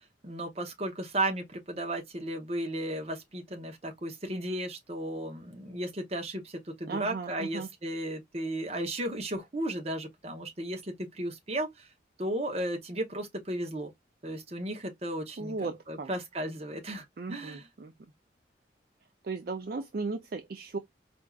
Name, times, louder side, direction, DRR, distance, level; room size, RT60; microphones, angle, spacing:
voice 1, 0.2-11.9 12.2-13.9 14.2-17.6, right 1 dB, 35° right, 0.8 m, -35 dB
voice 2, 6.9-7.7 15.4-16.1 17.2-17.9 19.2-20.8, right 4 dB, 50° right, 0.4 m, -36 dB
4.4 x 2.5 x 2.3 m
head